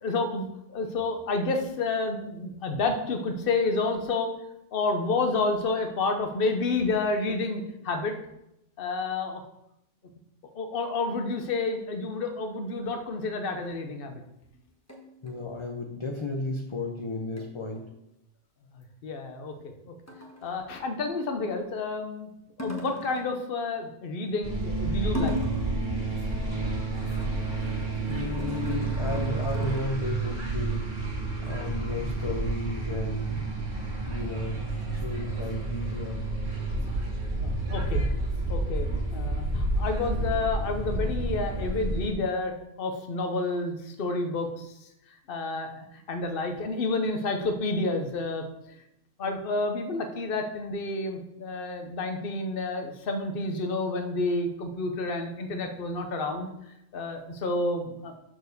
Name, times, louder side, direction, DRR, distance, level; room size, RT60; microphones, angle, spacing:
voice 1, 0.0-4.3 4.7-8.2 8.8-9.4 10.6-14.2 19.0-19.5 20.4-22.3 22.6-25.4 37.4-38.0 38.5-44.7 45.3-45.7 46.1-48.4 49.2-56.5 56.9-58.1, left 3 dB, 50° left, 5 dB, 1.1 m, -29 dB
sound 1, 13.7-13.8 14.9-15.3 17.4-17.5 17.8-17.9 20.1-20.6 22.6-23.4 25.1-25.8 26.1-29.8, left 1 dB, 15° left, 1.3 m, -37 dB
voice 2, 15.2-17.9 28.1-31.0 31.4-33.6 34.1-34.7 34.9-36.2, left 3 dB, 30° left, 3 dB, 0.6 m, -34 dB
sound 2, 24.4-42.1, right 2 dB, 80° right, 2.3 m, -30 dB
6.8 x 4.7 x 6.5 m, 0.84 s
omnidirectional pair, 1.3 m